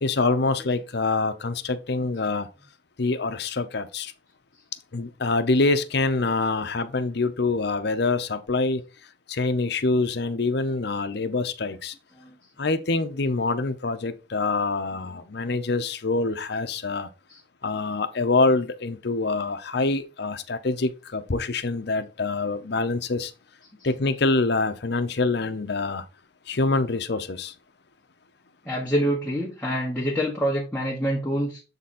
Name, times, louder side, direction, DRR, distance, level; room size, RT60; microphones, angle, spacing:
voice 1, 0.0-2.5 3.0-4.1 4.9-8.8 9.3-11.9 12.6-17.1 17.6-23.3 23.8-26.0 26.5-27.5, left 3 dB, 60° left, 0.7 m, -25 dB
voice 2, 28.6-31.6, equal, 10° left, 1.2 m, -26 dB
7.4 x 4.0 x 4.2 m
head